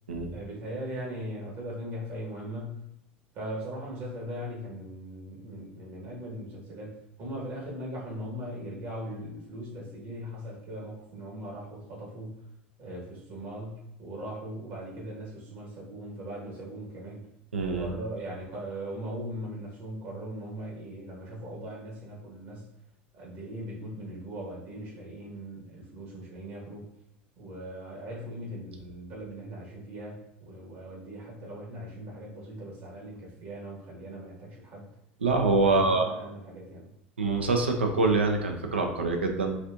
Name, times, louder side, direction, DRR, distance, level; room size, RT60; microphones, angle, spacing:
voice 1, 0.3-2.9 3.3-12.4 12.8-17.3 17.8-22.7 23.1-26.8 27.4-34.9 35.7-36.9, equal, 55° right, -2 dB, 1.2 m, -39 dB
voice 2, 17.5-17.9 35.2-36.1 37.2-39.6, right 3 dB, 90° right, 4 dB, 0.4 m, -25 dB
4.1 x 2.4 x 2.5 m, 0.83 s
hypercardioid pair, 80°, 6 cm